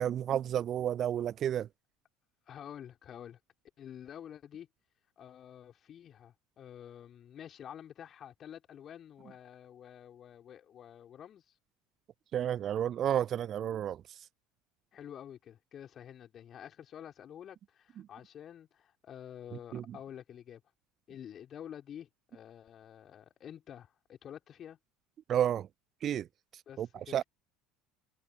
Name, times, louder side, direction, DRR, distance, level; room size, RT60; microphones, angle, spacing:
voice 1, 0.0-1.7 12.3-14.0 19.7-19.8 25.3-25.7 26.0-26.3 26.8-26.9 27.1-27.2, right 10 dB, 40° right, 0.4 m, -31 dB
voice 2, 2.5-3.4 3.8-4.7 5.2-11.4 14.9-20.6 21.1-24.8 26.7-27.2, left 9 dB, 40° left, 5.7 m, -49 dB
figure-of-eight pair, 65°, 0 cm